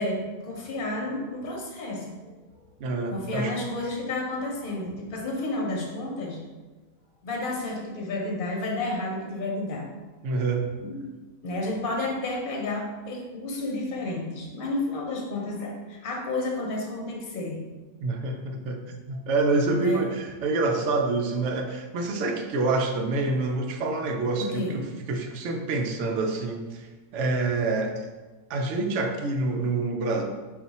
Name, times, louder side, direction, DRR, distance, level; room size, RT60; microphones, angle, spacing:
voice 1, 0.0-2.3 3.1-6.4 7.2-9.9 10.8-11.1 11.4-17.6 19.7-20.1 24.4-24.8, left 2 dB, 45° left, -2 dB, 0.9 m, -31 dB
voice 2, 2.8-3.5 10.2-10.6 18.0-18.8 19.1-26.9 27.1-28.1 28.5-30.2, right 3 dB, 75° right, 4 dB, 0.9 m, -27 dB
4.1 x 2.4 x 4.0 m, 1.2 s
omnidirectional pair, 1.3 m